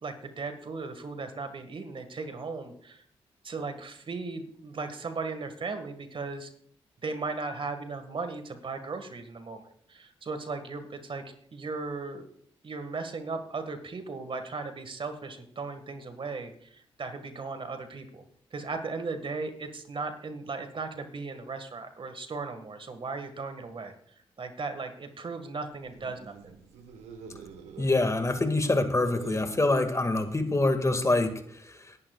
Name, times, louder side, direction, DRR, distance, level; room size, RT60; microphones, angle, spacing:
voice 1, 0.0-3.0 3.4-6.5 7.0-9.6 9.9-12.3 12.6-18.2 18.5-23.9 24.4-26.5, right 4 dB, 50° right, 8 dB, 1.8 m, -37 dB
sound 1, 25.7-30.8, right 6 dB, 85° right, 1.3 m, -47 dB
voice 2, 27.8-32.0, left 2 dB, 30° left, 8 dB, 1.9 m, -26 dB
22.5 x 11.5 x 2.4 m, 0.64 s
supercardioid pair, 40°, 11 cm